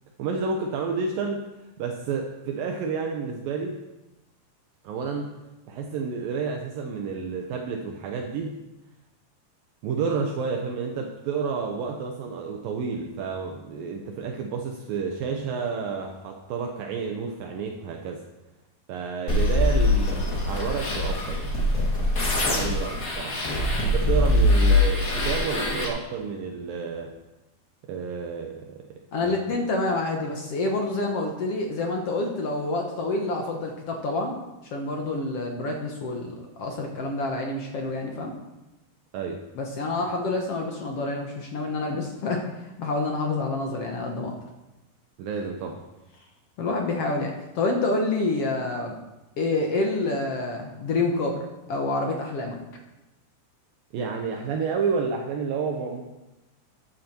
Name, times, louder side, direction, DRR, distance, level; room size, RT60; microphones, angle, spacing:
voice 1, 0.2-1.5 1.8-3.8 4.8-5.3 5.7-8.6 9.8-18.2 18.9-21.6 22.5-23.5 23.8-27.1 27.9-29.6 39.1-39.4 45.2-45.8 53.9-56.1, right 5 dB, 75° right, 2 dB, 2.4 m, -30 dB
sound 1, 19.3-25.9, left 1 dB, 35° left, 1.4 m, -23 dB
voice 2, 29.1-34.3 34.7-38.3 39.5-42.4 42.8-44.4 46.6-49.0 49.4-51.4 51.7-52.6, left 2 dB, 65° left, 2 dB, 1.5 m, -27 dB
14.0 x 9.3 x 4.4 m, 1.0 s
omnidirectional pair, 4.5 m